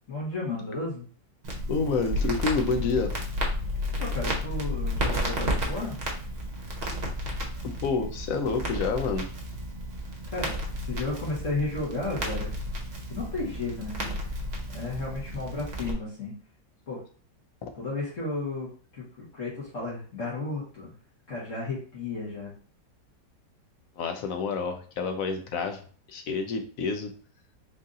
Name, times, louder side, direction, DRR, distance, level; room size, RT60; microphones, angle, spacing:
voice 1, 0.1-1.1 4.0-6.0 10.3-10.5 10.8-12.5 13.1-14.2 14.7-16.3 16.9-17.0 17.7-20.9 21.3-22.5, left 3 dB, 50° left, -5 dB, 1.5 m, -33 dB
Crackle, 1.4-15.9, equal, 35° right, 0.7 m, -32 dB
voice 2, 1.7-3.2 7.6-9.3 17.6-17.7 24.0-25.8 26.1-27.1, left 4 dB, 70° left, 5 dB, 0.9 m, -28 dB
3.9 x 2.7 x 3.7 m, 0.43 s
omnidirectional pair, 1.9 m